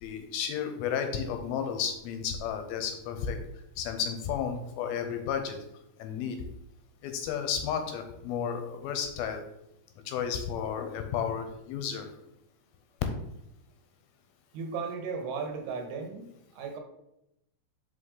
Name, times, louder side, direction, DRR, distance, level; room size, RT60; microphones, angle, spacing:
voice 1, 0.0-3.4 3.8-5.6 6.0-6.4 7.0-9.4 10.1-12.1, left 7 dB, 85° left, 6 dB, 2.4 m, -32 dB
voice 2, 14.5-16.8, right 5 dB, 80° right, 3 dB, 3.0 m, -36 dB
6.1 x 5.0 x 3.8 m, 0.84 s
omnidirectional pair, 4.6 m